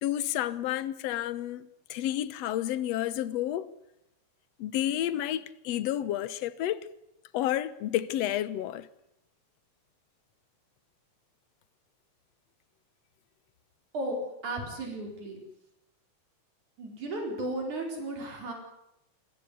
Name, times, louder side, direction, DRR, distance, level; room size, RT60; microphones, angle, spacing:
voice 1, 0.0-3.7 4.6-6.8 7.3-8.9, left 12 dB, 65° left, 2.0 m, -30 dB
voice 2, 13.9-15.4 16.8-18.5, right 1 dB, 75° right, 6.0 m, -34 dB
26.5 x 15.5 x 9.5 m
omnidirectional pair, 3.4 m